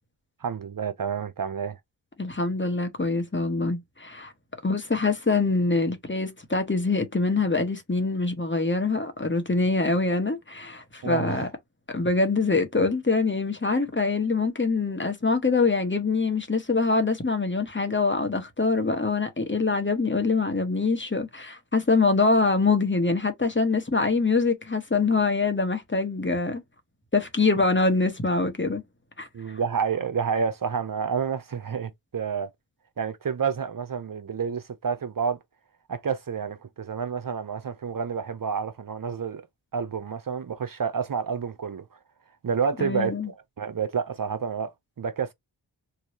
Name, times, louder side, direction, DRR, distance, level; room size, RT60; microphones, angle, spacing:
voice 1, 0.4-1.8 11.0-11.5 29.3-32.5 33.0-35.4 35.9-39.4 39.7-42.0 42.4-45.3, right 6 dB, 50° right, 0.7 m, -29 dB
voice 2, 2.2-4.3 4.6-11.5 11.9-26.6 27.1-28.8 29.2-29.6 42.8-43.3, left 3 dB, 25° left, 1.3 m, -24 dB
3.1 x 2.6 x 2.8 m
cardioid pair, 40°, 45 cm